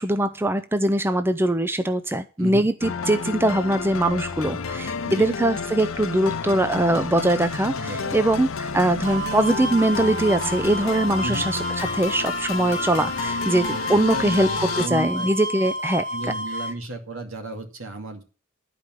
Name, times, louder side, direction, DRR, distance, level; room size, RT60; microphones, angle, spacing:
voice 1, 0.0-16.1, right 1 dB, 10° right, 11 dB, 0.5 m, -22 dB
sound 1, 2.8-14.9, left 5 dB, 75° left, 0.8 m, -30 dB
voice 2, 7.8-8.2 11.2-11.5 13.9-14.5 14.7-15.3 16.1-18.2, right 1 dB, 75° right, 4 dB, 2.4 m, -34 dB
sound 2, 9.0-16.7, equal, 60° right, 1.1 m, -31 dB
11.5 x 5.1 x 7.6 m, 0.34 s
head